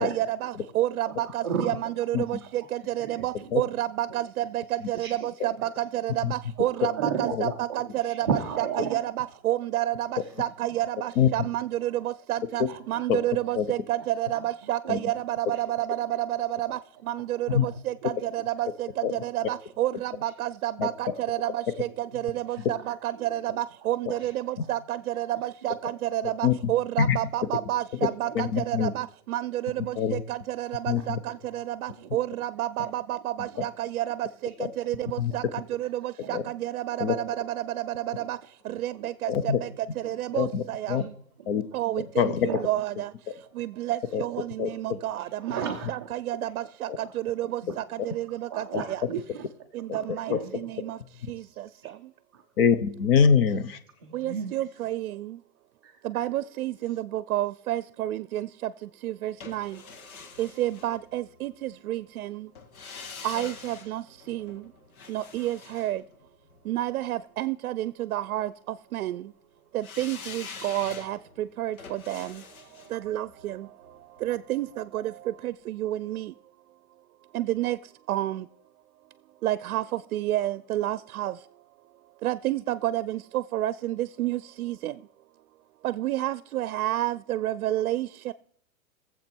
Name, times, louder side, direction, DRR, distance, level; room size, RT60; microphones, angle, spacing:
voice 1, 0.0-1.7 2.1-2.4 2.7-4.6 4.9-8.3 8.9-15.7 16.0-16.8 17.1-21.9 22.1-31.2 31.5-34.1 34.9-35.4 35.8-37.3 38.3-38.4 38.8-39.3 39.6-39.7 40.0-41.0 41.7-43.1 43.6-46.9 47.2-47.6 48.1-48.5 48.9-49.0 49.9-50.3 50.6-51.0 51.3-51.4 54.1-55.3 56.0-58.5 59.0-59.7 60.4-62.4 63.2-64.0 64.3-64.6 65.1-66.0 66.7-68.5 68.9-69.2 69.7-71.2 71.6-72.3 72.9-73.5 74.2-74.7 74.9-75.0 75.4-76.3 77.3-77.8 78.1-78.4 79.4-79.8 80.1-81.3 82.2-84.9 85.8-88.1, right 14 dB, 80° right, 17 dB, 0.6 m, -30 dB
voice 2, 1.1-1.7 2.2-2.5 3.0-3.5 4.1-4.2 4.9-5.5 6.6-7.4 7.7-9.0 10.2-10.3 10.7-10.8 12.7-13.0 14.0-14.1 14.3-14.5 14.8-15.0 15.5-15.6 16.7-16.8 17.6-17.8 19.2-19.3 20.2-20.3 21.1-21.2 22.5-22.8 23.2-23.4 24.1-24.4 25.3-25.4 28.3-28.4 30.9-31.4 32.0-32.1 32.8-32.9 33.5-33.7 35.0-35.1 36.2-36.5 37.7-37.8 38.2-38.3 38.9-39.1 40.0-40.4 40.9-41.0 41.4-41.5 42.2-42.6 43.7-43.8 44.3-44.4 45.2-46.1 46.4-46.5 47.0-47.1 47.4-47.8 48.5-49.4 49.9-50.7 51.3-51.9 52.3-52.4 54.0-54.6 55.8-56.1, right 6 dB, 20° right, 0 dB, 0.4 m, -36 dB
voice 3, 28.3-28.9 29.9-30.2 30.9-31.2 34.6-34.7 35.2-35.3 36.3-36.4 37.0-37.2 39.3-39.6 40.3-41.1 41.5-41.7 42.0-42.5 43.3-43.4 44.1-44.2 44.6-44.7 48.7-48.8 50.3-50.4 52.6-53.8, left 7 dB, 40° left, 13 dB, 0.9 m, -24 dB
sound 1, 59.4-61.5 62.6-66.8 69.8-74.8 75.1-75.2, left 5 dB, 80° left, 1.7 m, -45 dB
17.5 x 7.6 x 4.5 m, 0.64 s
supercardioid pair, 170°, 42 cm